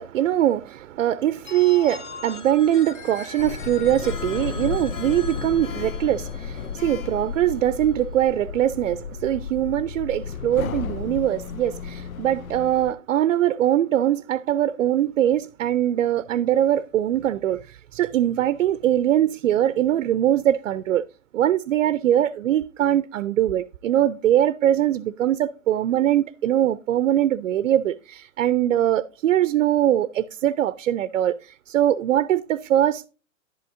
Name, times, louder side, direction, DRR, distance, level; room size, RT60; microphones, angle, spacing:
voice 1, 0.0-21.0 21.3-33.1, right 11 dB, 65° right, 0.6 m, -22 dB
Telephone, 1.4-7.2, left 4 dB, 20° left, 0.8 m, -41 dB
Sliding door, 3.4-12.9, left 7 dB, 80° left, 0.6 m, -33 dB
11.0 x 8.6 x 2.5 m
hypercardioid pair, 135°, 41 cm